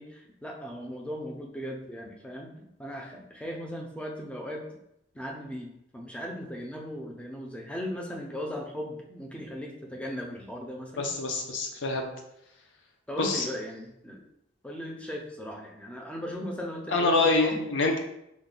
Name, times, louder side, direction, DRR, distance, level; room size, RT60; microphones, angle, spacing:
voice 1, 0.0-4.8 5.1-11.1 13.1-14.2 14.6-17.6, equal, 5° left, 0 dB, 0.4 m, -38 dB
voice 2, 11.0-12.1 13.2-13.5 16.9-18.0, left 3 dB, 80° left, 3 dB, 0.5 m, -25 dB
2.9 x 2.1 x 3.7 m, 0.81 s
head